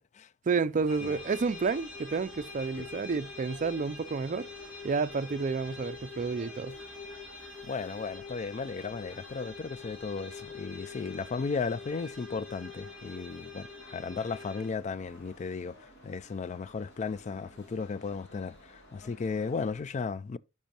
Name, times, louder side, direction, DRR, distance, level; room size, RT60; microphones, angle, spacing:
voice 1, 0.5-4.5 4.8-6.7, right 4 dB, 40° right, 0.4 m, -30 dB
sound 1, 0.7-19.8, left 1 dB, 60° left, 2.3 m, -55 dB
sound 2, 0.9-14.7, left 3 dB, 80° left, 2.8 m, -45 dB
voice 2, 7.6-20.4, left 5 dB, 35° left, 0.3 m, -35 dB
10.5 x 5.4 x 2.9 m
head